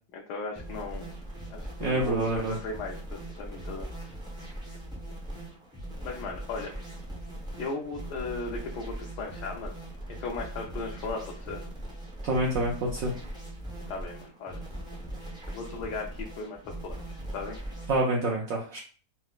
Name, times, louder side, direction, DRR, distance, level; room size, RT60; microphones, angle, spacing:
voice 1, 0.1-1.1 1.5-3.9 6.0-6.7 7.6-9.7 10.1-11.6 13.9-14.6 15.5-17.6, left 3 dB, 75° left, -1 dB, 1.1 m, -37 dB
sound 1, 0.5-18.0, right 1 dB, 5° right, 0.4 m, -40 dB
voice 2, 1.8-2.6 12.2-13.1 17.9-18.8, right 2 dB, 70° right, -1 dB, 0.8 m, -27 dB
3.9 x 2.1 x 2.3 m, 0.40 s
omnidirectional pair, 1.8 m